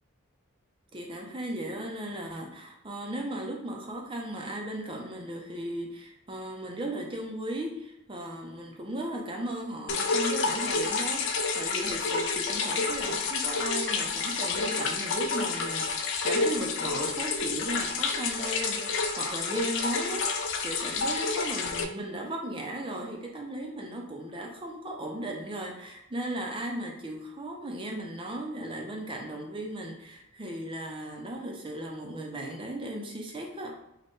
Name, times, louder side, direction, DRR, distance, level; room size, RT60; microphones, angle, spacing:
voice 1, 0.9-33.8, right 1 dB, 25° right, 1 dB, 0.5 m, -36 dB
sound 1, 9.9-21.8, left 4 dB, 55° left, 0.3 m, -29 dB
3.9 x 2.2 x 3.5 m, 0.87 s
head